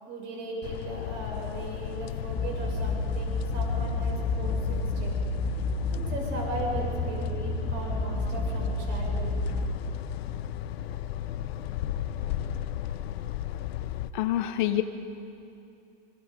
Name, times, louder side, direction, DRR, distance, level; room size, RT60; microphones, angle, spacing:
voice 1, 0.0-5.2 5.9-9.4, right 2 dB, 35° right, 0 dB, 6.5 m, -37 dB
sound 1, 0.6-14.1, left 11 dB, 75° left, 0.8 m, -34 dB
sound 2, 2.4-9.6, left 3 dB, 5° right, 1.6 m, -30 dB
voice 2, 14.1-14.8, left 13 dB, 50° left, 9 dB, 1.0 m, -26 dB
26.0 x 24.0 x 5.3 m, 2.6 s
supercardioid pair, 165°, 31 cm